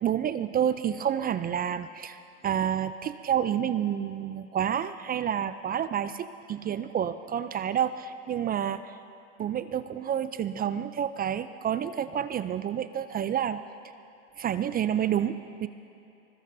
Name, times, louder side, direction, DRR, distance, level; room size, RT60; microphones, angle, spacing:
voice 1, 0.0-9.0 9.4-13.6 14.4-15.7, right 9 dB, 25° right, 12 dB, 0.4 m, -29 dB
24.5 x 21.0 x 2.7 m, 2.6 s
hypercardioid pair, 90°, 34 cm